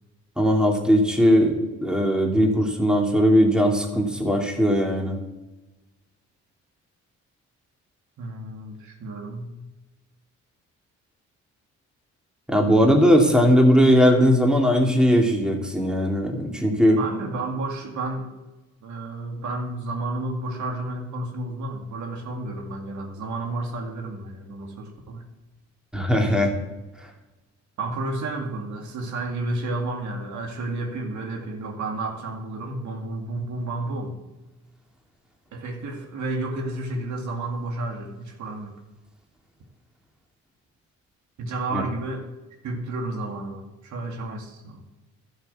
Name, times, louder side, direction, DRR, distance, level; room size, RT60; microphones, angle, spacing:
voice 1, 0.4-5.2 12.5-17.0 25.9-26.5 41.7-41.8, equal, 5° right, 1 dB, 2.5 m, -19 dB
voice 2, 8.2-9.5 16.9-18.3 18.8-25.2 27.8-34.2 35.5-38.8 41.4-42.3 42.6-44.8, right 2 dB, 70° right, 2 dB, 2.2 m, -31 dB
12.0 x 6.4 x 8.0 m, 1.1 s
cardioid pair, 90°, 30 cm